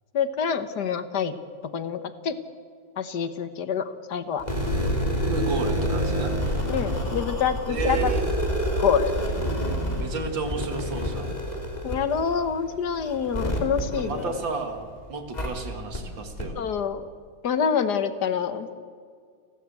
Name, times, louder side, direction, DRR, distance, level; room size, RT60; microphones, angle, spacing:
voice 1, 0.1-1.3 1.7-2.3 3.0-3.8 4.1-4.4 6.7-8.1 8.8-9.1 11.8-14.4 16.5-17.1 17.4-18.7, left 7 dB, 65° left, 11 dB, 1.7 m, -26 dB
sound 1, 4.4-14.8 15.3-15.5 15.9-16.0 16.4-16.5, equal, 20° left, 3.3 m, -28 dB
voice 2, 5.3-6.4 7.7-8.3 10.0-11.3 13.9-16.6, right 4 dB, 90° right, 6 dB, 2.9 m, -32 dB
30.0 x 12.5 x 8.3 m, 2.1 s
omnidirectional pair, 2.0 m